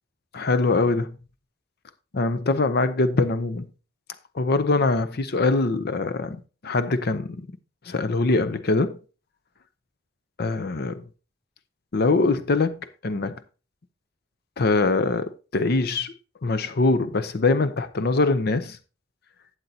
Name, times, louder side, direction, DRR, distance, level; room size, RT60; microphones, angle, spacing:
voice 1, 0.3-1.1 2.1-3.7 4.3-6.4 6.6-7.5 7.9-9.0 10.4-11.0 11.9-12.8 13.0-13.4 14.6-16.1 16.4-18.8, left 3 dB, 55° left, 0.6 m, -23 dB
12.0 x 8.1 x 2.8 m
head